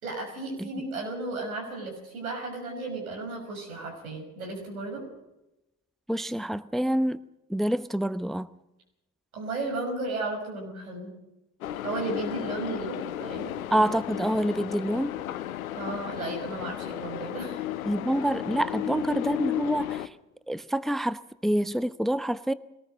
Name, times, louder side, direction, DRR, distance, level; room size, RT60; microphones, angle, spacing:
voice 1, 0.0-5.0 9.3-11.1 11.8-13.5 15.8-17.6, right 3 dB, 85° right, 1 dB, 6.2 m, -34 dB
voice 2, 6.1-7.2 7.5-8.5 13.7-15.1 17.8-20.1 20.5-22.5, right 1 dB, ahead, 15 dB, 0.8 m, -27 dB
sound 1, 11.6-20.1, left 12 dB, 80° left, 0.9 m, -34 dB
22.5 x 19.0 x 6.5 m, 0.93 s
figure-of-eight pair, 50°, 41 cm